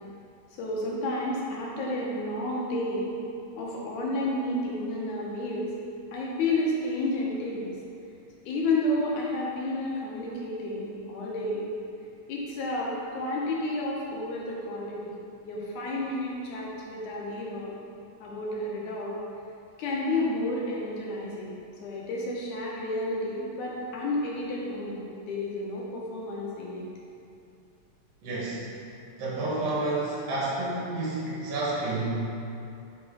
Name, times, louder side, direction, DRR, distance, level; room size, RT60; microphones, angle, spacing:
voice 1, 0.5-3.2 3.5-5.7 6.1-7.7 8.5-11.7 12.3-15.1 15.4-17.7 18.2-19.1 19.8-21.5 21.8-26.9, left 1 dB, 85° left, -4 dB, 2.4 m, -31 dB
voice 2, 28.2-28.7 29.2-32.2, right 2 dB, 60° right, -6 dB, 2.2 m, -30 dB
5.6 x 4.2 x 4.9 m, 2.6 s
omnidirectional pair, 3.4 m